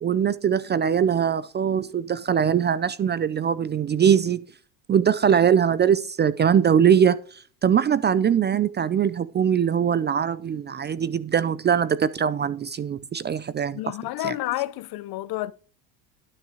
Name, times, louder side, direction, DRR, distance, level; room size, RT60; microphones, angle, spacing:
voice 1, 0.0-4.4 4.9-7.2 7.6-13.8 14.2-14.3, right 8 dB, 25° right, 0.4 m, -21 dB
voice 2, 13.7-15.5, left 16 dB, 55° left, 0.8 m, -30 dB
12.0 x 6.4 x 4.9 m
supercardioid pair, 110°, 46 cm